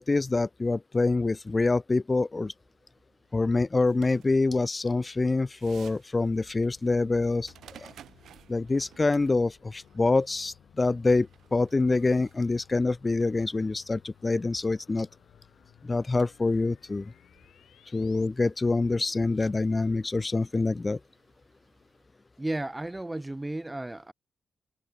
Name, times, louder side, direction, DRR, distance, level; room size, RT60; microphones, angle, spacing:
voice 1, 0.0-2.5 3.3-7.5 7.8-7.9 8.5-15.1 15.8-17.1 17.9-21.0, left 3 dB, 20° left, 0.8 m, -26 dB
sound 1, 2.4-22.0, right 10 dB, 80° right, 6.4 m, -59 dB
sound 2, 6.3-18.3, left 10 dB, 85° left, 3.4 m, -59 dB
voice 2, 22.4-24.1, right 1 dB, 10° right, 1.4 m, -33 dB
wide cardioid pair, 140°, 0 cm